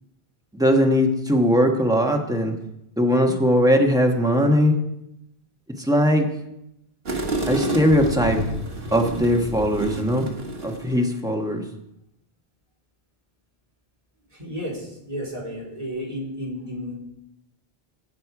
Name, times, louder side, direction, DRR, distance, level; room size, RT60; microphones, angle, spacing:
voice 1, 0.5-2.5 3.0-4.7 5.8-6.3 7.5-8.4 8.9-10.3 10.6-11.6, equal, 5° right, 2 dB, 1.3 m, -20 dB
sound 1, 7.1-11.1, right 1 dB, 65° right, 1.7 m, -29 dB
voice 2, 14.3-16.9, equal, 35° right, -4 dB, 3.7 m, -32 dB
16.5 x 6.5 x 4.8 m, 0.83 s
omnidirectional pair, 1.1 m